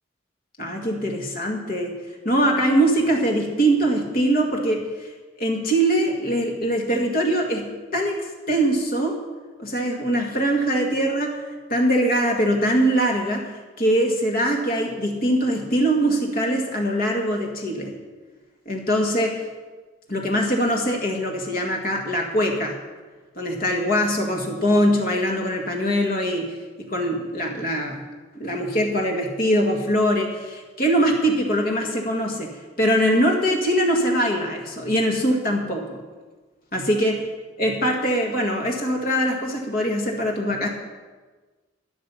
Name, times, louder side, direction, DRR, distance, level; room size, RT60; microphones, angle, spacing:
voice 1, 0.6-1.9 2.3-5.1 5.4-9.1 9.6-11.4 11.7-13.4 13.8-17.9 18.7-19.4 20.1-22.8 23.4-26.5 26.8-28.0 28.4-32.5 32.8-36.0 36.7-37.2 37.6-40.7, equal, 45° left, 0 dB, 1.9 m, -22 dB
12.5 x 10.0 x 7.1 m, 1.3 s
head